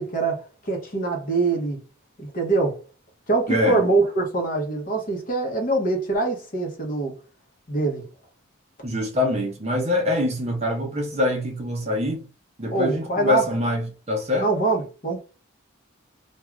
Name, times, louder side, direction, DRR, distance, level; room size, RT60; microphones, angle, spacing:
voice 1, 0.0-1.8 2.2-2.8 3.3-7.1 7.7-8.1 12.7-13.4 14.4-15.2, right 3 dB, 40° left, 0.8 m, -24 dB
voice 2, 3.5-3.8 8.8-12.3 12.6-14.5, left 1 dB, 30° right, 0.6 m, -24 dB
2.4 x 2.3 x 3.0 m
head